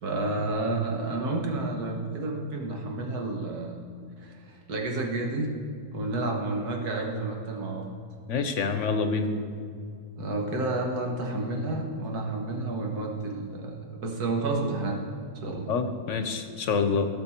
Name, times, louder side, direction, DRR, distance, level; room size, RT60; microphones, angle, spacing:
voice 1, 0.0-3.8 4.2-5.5 5.9-7.9 10.2-15.0 15.4-15.7, right 2 dB, 85° right, 1 dB, 1.9 m, -30 dB
voice 2, 8.3-9.3 15.7-17.1, left 5 dB, 60° left, 8 dB, 0.9 m, -27 dB
17.5 x 6.1 x 4.4 m, 2.4 s
omnidirectional pair, 1.6 m